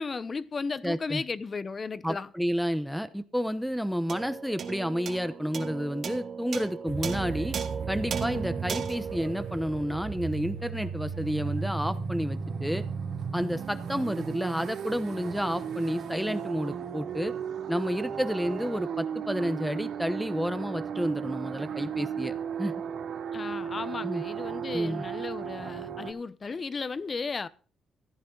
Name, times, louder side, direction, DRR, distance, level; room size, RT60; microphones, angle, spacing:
voice 1, 0.0-2.3 23.3-27.5, left 4 dB, 35° left, 0.8 m, -35 dB
voice 2, 0.8-1.2 2.0-7.6 7.9-12.8 13.3-17.3 17.7-22.8 24.0-24.2 24.7-25.1, equal, ahead, 0.9 m, -30 dB
sound 1, 4.1-10.7, right 6 dB, 55° right, 2.2 m, -37 dB
sound 2, 6.9-26.1, right 6 dB, 75° right, 2.3 m, -35 dB
15.0 x 10.5 x 3.9 m
cardioid pair, 90°, 0 cm